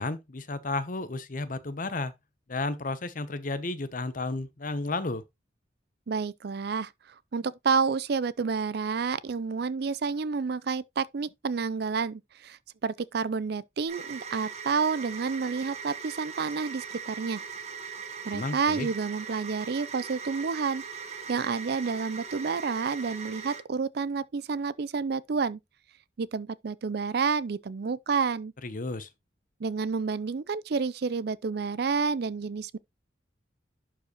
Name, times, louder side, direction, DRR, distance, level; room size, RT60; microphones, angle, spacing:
voice 1, 0.0-2.1 2.5-5.2 18.3-18.9 28.6-29.1, left 2 dB, 45° left, 0.8 m, -32 dB
voice 2, 6.1-6.9 7.3-17.4 18.3-20.8 21.3-25.6 26.2-28.5 29.6-32.8, right 5 dB, 55° right, 0.4 m, -29 dB
sound 1, 13.9-23.6, right 6 dB, 35° right, 1.5 m, -40 dB
11.5 x 4.8 x 3.0 m
head